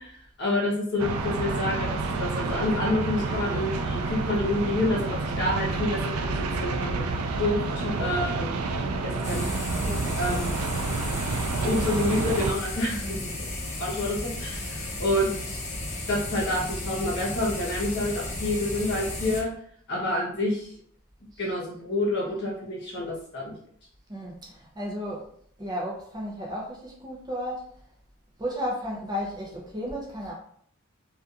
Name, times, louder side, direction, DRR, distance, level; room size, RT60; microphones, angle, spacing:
voice 1, 0.0-7.0 7.4-8.6 9.0-9.4 10.2-10.5 11.6-15.6 16.1-19.5 19.9-20.7 21.4-23.6, left 1 dB, 55° left, -3 dB, 0.8 m, -28 dB
sound 1, 1.0-12.5, right 3 dB, 90° right, 0.3 m, -29 dB
sound 2, 9.2-19.4, left 2 dB, 30° left, 0.5 m, -34 dB
voice 2, 9.8-10.3 13.0-13.3 15.5-15.6 21.3-21.5 24.1-25.3 25.6-27.7 28.4-30.3, equal, 20° right, -3 dB, 0.5 m, -34 dB
2.7 x 2.3 x 2.4 m, 0.64 s
head